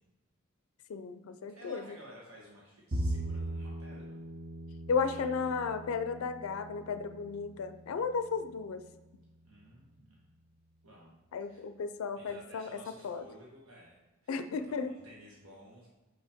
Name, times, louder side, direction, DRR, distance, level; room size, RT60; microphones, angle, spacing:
voice 1, 0.9-1.8 4.9-8.8 11.3-13.2 14.3-14.9, left 5 dB, 80° left, 10 dB, 0.4 m, -34 dB
voice 2, 1.5-4.2 5.1-5.5 9.4-10.3 10.8-11.6 12.1-14.0 14.2-15.9, equal, 80° right, -4 dB, 1.3 m, -54 dB
Bowed string instrument, 2.9-9.2, right 1 dB, 45° right, 0.6 m, -40 dB
5.7 x 5.5 x 3.5 m, 1.1 s
head